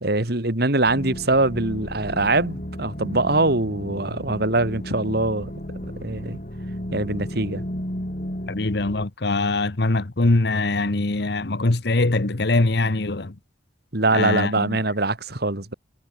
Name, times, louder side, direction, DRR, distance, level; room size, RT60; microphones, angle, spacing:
voice 1, 0.0-5.5 5.8-6.4 6.9-7.6 13.9-15.7, right 2 dB, 60° right, 2.9 m, -23 dB
sound 1, 0.9-9.1, equal, 45° left, 5.5 m, -33 dB
voice 2, 8.5-13.3 14.1-14.7, left 2 dB, 65° left, 1.2 m, -22 dB
head